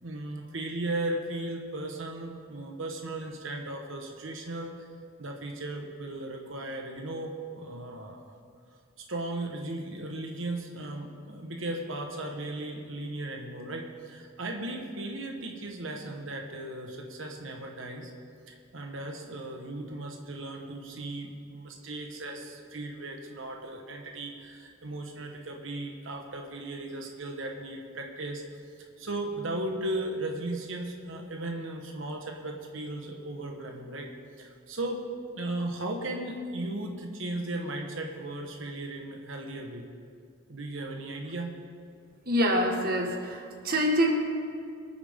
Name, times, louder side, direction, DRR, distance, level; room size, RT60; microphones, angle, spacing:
voice 1, 0.0-4.9 5.2-8.2 9.1-18.1 18.5-28.4 29.0-34.1 34.4-35.0 35.3-39.9 40.5-41.5, right 2 dB, 65° right, 2 dB, 1.3 m, -36 dB
voice 2, 42.3-44.1, equal, 45° right, 2 dB, 1.6 m, -25 dB
22.0 x 9.5 x 3.7 m, 2.4 s
head